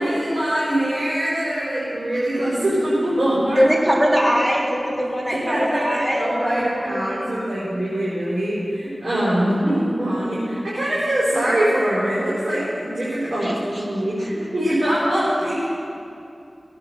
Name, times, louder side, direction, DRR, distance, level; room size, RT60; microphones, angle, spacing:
voice 1, 0.0-3.6 5.2-13.5 13.8-15.7, right 1 dB, 55° right, -9 dB, 4.7 m, -23 dB
voice 2, 3.5-7.6 13.4-14.3, equal, 15° right, -4 dB, 3.4 m, -23 dB
18.0 x 8.7 x 7.5 m, 2.7 s
wide cardioid pair, 65°, 0 cm